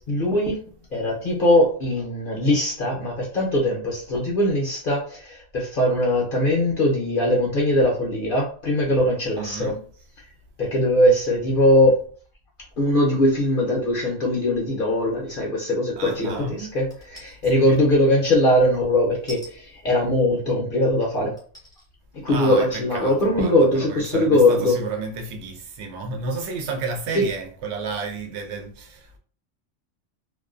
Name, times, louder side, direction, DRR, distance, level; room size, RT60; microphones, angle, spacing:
voice 1, 0.1-0.6 0.9-9.7 10.6-12.1 12.8-21.4 22.1-24.8 27.1-27.2, left 1 dB, 50° left, 0.7 m, -21 dB
voice 2, 9.4-9.9 16.0-16.7 17.5-17.9 22.3-29.2, right 3 dB, 65° right, 0.8 m, -31 dB
sound 1, 16.9-17.4 19.3-19.5 20.5-20.6 21.4-21.9 22.4-22.5, equal, 5° left, 0.4 m, -42 dB
2.4 x 2.2 x 2.4 m
omnidirectional pair, 1.3 m